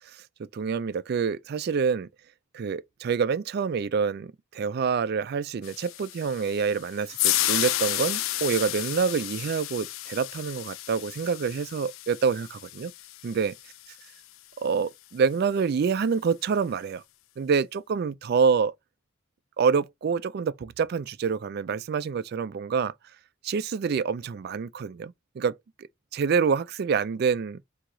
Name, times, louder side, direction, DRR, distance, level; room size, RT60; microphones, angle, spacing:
voice 1, 0.1-2.1 2.5-12.9 13.2-13.5 14.6-17.0 17.4-18.7 19.6-22.9 23.4-25.5 25.8-25.9 26.1-27.6, right 6 dB, 50° right, 0.3 m, -27 dB
sound 1, 5.6-13.9, left 15 dB, 80° left, 0.4 m, -32 dB
4.6 x 2.8 x 3.8 m
head